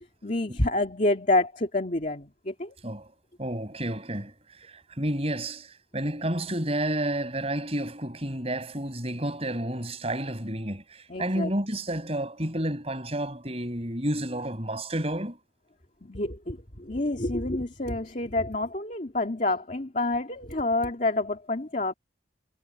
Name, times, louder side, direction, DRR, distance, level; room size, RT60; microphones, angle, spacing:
voice 1, 0.2-2.7 11.1-11.5 16.1-21.9, left 2 dB, 40° left, 2.3 m, -28 dB
voice 2, 3.4-15.4, right 1 dB, 35° right, 6.0 m, -30 dB
head